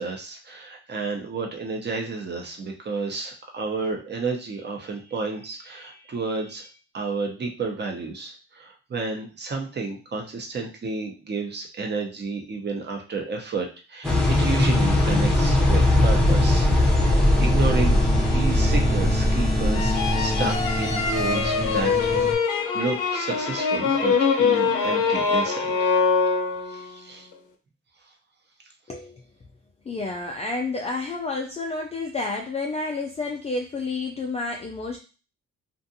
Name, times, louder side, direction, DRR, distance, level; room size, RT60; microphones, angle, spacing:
voice 1, 0.0-6.7 6.9-16.7 17.0-18.0 18.3-22.1 22.7-25.7 26.7-27.3, right 4 dB, 35° right, 2 dB, 0.8 m, -31 dB
sound 1, 14.0-22.3, left 1 dB, ahead, 0.7 m, -20 dB
sound 2, 19.7-26.9, left 5 dB, 80° left, 0.7 m, -23 dB
voice 2, 28.9-29.2 29.9-35.0, left 3 dB, 20° left, 1 dB, 0.4 m, -30 dB
2.5 x 2.5 x 2.6 m, 0.35 s
cardioid pair, 90°, 30 cm